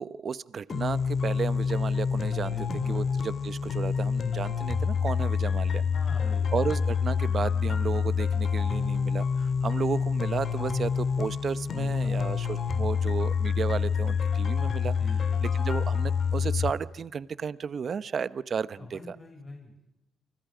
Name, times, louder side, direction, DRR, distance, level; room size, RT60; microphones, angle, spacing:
voice 1, 0.0-2.5 2.9-5.8 6.5-15.0 15.4-19.2, right 6 dB, 50° right, 16 dB, 0.9 m, -33 dB
sound 1, 0.7-16.7, left 6 dB, 50° left, 2.0 m, -27 dB
voice 2, 2.5-3.1 5.9-6.7 11.7-12.7 15.0-15.7 18.8-19.8, left 2 dB, 25° left, 2 dB, 6.2 m, -45 dB
29.0 x 25.0 x 5.1 m, 0.89 s
cardioid pair, 90°, 0 cm